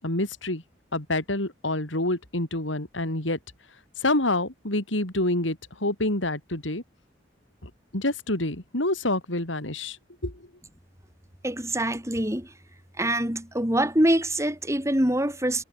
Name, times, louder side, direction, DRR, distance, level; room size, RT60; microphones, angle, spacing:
voice 1, 0.0-0.6 0.9-3.4 4.0-6.8 7.6-10.0 10.2-10.5, left 1 dB, 85° left, 5.4 m, -27 dB
voice 2, 11.4-12.5 13.0-15.6, right 1 dB, 15° right, 7.3 m, -24 dB
head